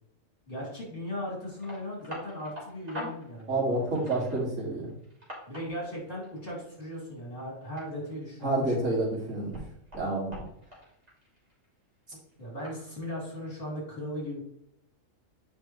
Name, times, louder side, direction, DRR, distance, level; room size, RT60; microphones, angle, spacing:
voice 1, 0.5-4.3 5.5-9.0 12.4-14.4, equal, 45° left, -4 dB, 3.3 m, -38 dB
sound 1, 1.0-1.1 1.3-7.0 7.4-9.2 9.5-11.6 12.3-13.6, left 1 dB, 30° right, 2.6 m, -45 dB
voice 2, 3.5-4.9 8.4-9.6 9.9-10.4, right 2 dB, 70° right, -4 dB, 2.7 m, -28 dB
8.1 x 5.3 x 3.2 m, 0.75 s
omnidirectional pair, 1.4 m